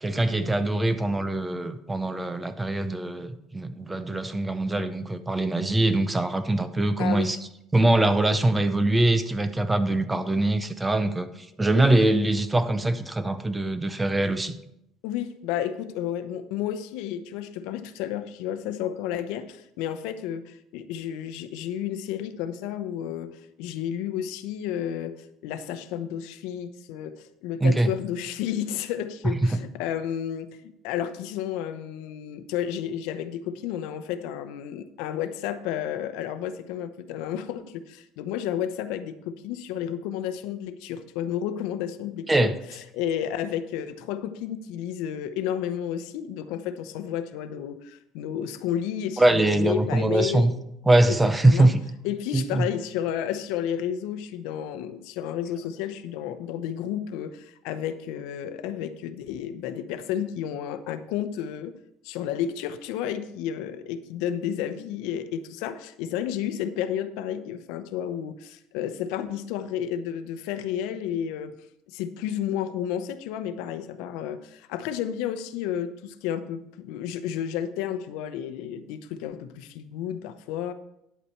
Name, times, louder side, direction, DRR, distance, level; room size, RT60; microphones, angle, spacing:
voice 1, 0.0-7.4 7.7-11.3 11.6-14.6 27.6-27.9 29.2-29.6 42.3-42.5 49.2-50.5 50.8-51.8 52.3-52.7, right 2 dB, 10° right, 11 dB, 0.6 m, -23 dB
voice 2, 7.0-7.3 15.0-50.5 51.1-51.2 51.4-51.7 52.0-61.7 62.0-71.6 71.9-80.7, left 10 dB, 80° left, 11 dB, 0.7 m, -32 dB
9.9 x 8.3 x 4.4 m, 0.80 s
cardioid pair, 155°, 0 cm